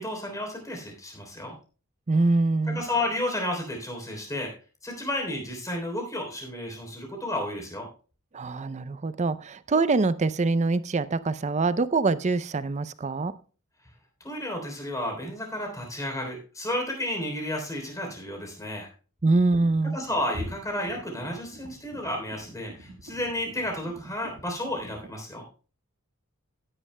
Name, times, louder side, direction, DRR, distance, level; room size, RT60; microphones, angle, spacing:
voice 1, 0.0-1.6 2.7-4.6 4.8-7.9 14.2-18.9 19.9-25.4, left 1 dB, 15° left, 2 dB, 3.4 m, -32 dB
voice 2, 2.1-2.8 8.3-13.3 19.2-20.0, right 3 dB, 30° right, 15 dB, 0.5 m, -24 dB
sound 1, 19.2-25.1, equal, 65° right, 1.7 m, -44 dB
16.5 x 10.0 x 2.2 m, 0.36 s
head